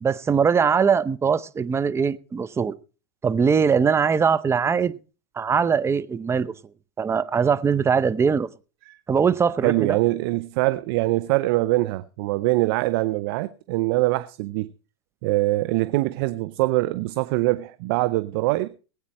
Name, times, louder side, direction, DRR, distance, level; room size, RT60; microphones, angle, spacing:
voice 1, 0.0-2.8 3.2-4.9 5.4-6.5 7.0-8.5 9.1-10.0, right 6 dB, 20° right, 0.7 m, -21 dB
voice 2, 9.6-14.7 15.2-18.7, right 19 dB, 60° right, 0.7 m, -23 dB
19.5 x 8.8 x 4.2 m
hypercardioid pair, 105°, 14 cm